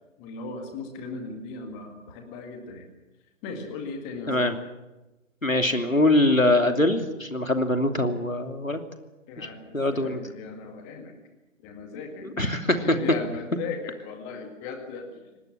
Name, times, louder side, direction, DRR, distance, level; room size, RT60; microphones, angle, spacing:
voice 1, 0.2-2.9 3.4-4.5 9.3-11.2 11.6-15.1, left 4 dB, 10° left, 5 dB, 2.0 m, -37 dB
voice 2, 5.4-8.8 9.4-9.5 9.7-10.2 12.2-12.8, left 1 dB, 90° left, 6 dB, 3.0 m, -23 dB
25.5 x 19.0 x 7.5 m, 1.0 s
figure-of-eight pair, 145°, 39 cm